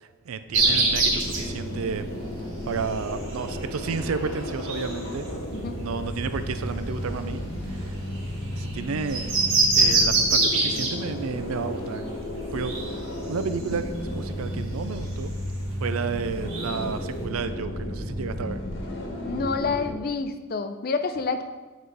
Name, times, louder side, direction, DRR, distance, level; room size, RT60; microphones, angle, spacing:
voice 1, 0.0-2.0 2.7-5.3 5.8-7.4 7.7-8.0 8.6-9.3 9.7-12.0 12.5-15.3 15.8-18.6, right 5 dB, 90° right, 11 dB, 0.5 m, -32 dB
sound 1, 0.5-19.9, left 1 dB, 60° left, 1.1 m, -33 dB
sound 2, 0.5-17.2, right 3 dB, 75° right, 2.0 m, -28 dB
voice 2, 19.3-21.4, left 4 dB, 45° left, 9 dB, 0.4 m, -28 dB
7.9 x 4.9 x 4.0 m, 1.2 s
head